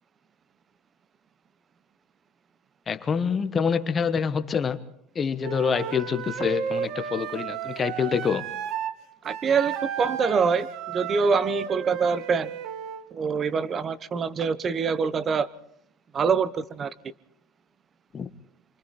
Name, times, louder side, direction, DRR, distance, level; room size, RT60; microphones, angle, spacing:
voice 1, 2.9-4.8 5.1-8.4 18.1-18.3, left 6 dB, 25° left, 1.2 m, -26 dB
Wind instrument woodwind instrument, 5.4-9.0 9.2-13.1, right 8 dB, 55° right, 1.6 m, -33 dB
voice 2, 9.2-12.5 13.1-15.5 16.1-16.9, right 5 dB, 25° right, 1.0 m, -25 dB
28.0 x 25.0 x 4.2 m
cardioid pair, 145°, 0 cm